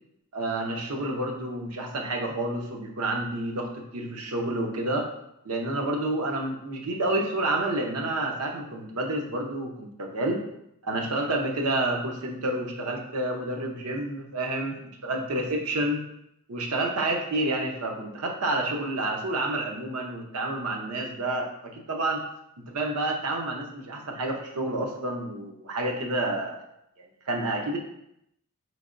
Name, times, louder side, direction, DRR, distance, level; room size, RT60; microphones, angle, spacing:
voice 1, 0.3-5.1 5.4-10.4 10.8-16.0 16.5-22.2 22.6-26.6 27.0-27.8, right 2 dB, 80° right, 1 dB, 0.7 m, -29 dB
4.9 x 3.3 x 2.5 m, 0.79 s
head